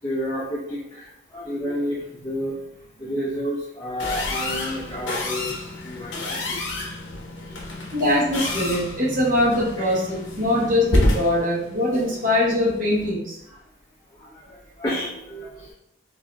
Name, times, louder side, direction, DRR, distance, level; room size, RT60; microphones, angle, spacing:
voice 1, 0.0-6.6 7.4-7.7 9.8-10.0 13.5-13.6 14.1-15.7, equal, 20° left, -7 dB, 0.6 m, -31 dB
sound 1, 4.0-13.1, left 1 dB, 70° left, 0.8 m, -29 dB
voice 2, 7.9-10.1 10.4-13.4, left 1 dB, 45° right, -5 dB, 1.0 m, -22 dB
4.7 x 2.6 x 2.3 m, 0.80 s
head